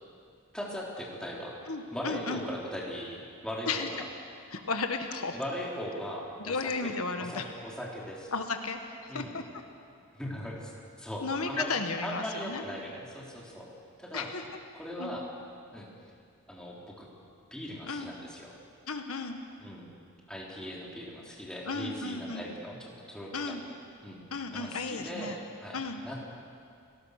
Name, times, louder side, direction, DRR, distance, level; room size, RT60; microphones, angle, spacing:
voice 1, 0.5-1.5 1.9-4.1 5.3-6.9 7.2-8.3 9.1-9.3 10.1-10.7 11.0-11.7 12.0-13.7 14.0-14.3 14.7-15.2 15.7-15.9 16.5-17.1 17.5-18.6 19.6-19.9 20.3-23.6 24.0-24.2 24.5-25.8 26.0-26.1, equal, 5° left, -3 dB, 3.6 m, -39 dB
voice 2, 1.7-2.4 3.7-3.9 4.5-5.4 6.4-7.5 8.3-9.4 11.2-12.6 14.1-14.4 15.0-15.1 17.8-18.1 18.9-19.4 21.7-22.5 23.3-23.6 24.3-25.4 25.7-26.0, left 4 dB, 75° left, 6 dB, 1.5 m, -34 dB
30.0 x 19.0 x 6.6 m, 2.4 s
head